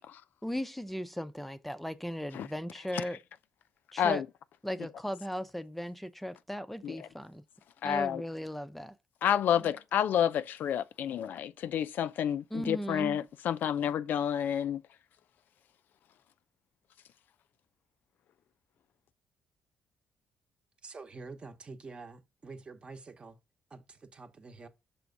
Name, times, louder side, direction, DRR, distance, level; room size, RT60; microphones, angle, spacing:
voice 1, 0.4-3.2 3.9-4.2 4.6-7.4 7.8-8.9 12.5-13.2, equal, 5° left, 0.5 m, -37 dB
voice 2, 7.8-8.2 9.2-14.8, left 9 dB, 70° left, 0.4 m, -29 dB
voice 3, 20.8-23.4 23.7-24.7, right 4 dB, 30° right, 0.9 m, -47 dB
6.0 x 3.5 x 5.2 m
cardioid pair, 110°, 3 cm